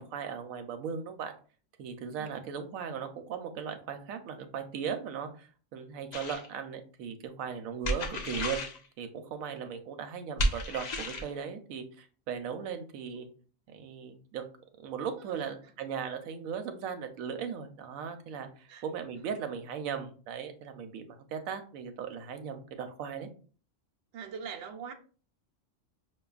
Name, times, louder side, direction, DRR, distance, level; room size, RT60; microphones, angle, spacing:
voice 1, 0.0-1.3 1.8-8.6 9.0-13.3 13.7-14.4 14.8-18.5 18.8-23.3, right 7 dB, 90° right, 1.0 m, -38 dB
sound 1, 6.1-6.5 7.8-8.8 10.4-11.3, equal, 85° left, 0.3 m, -32 dB
voice 2, 24.1-24.9, right 7 dB, 65° right, 0.8 m, -42 dB
5.3 x 2.2 x 2.3 m
omnidirectional pair, 1.4 m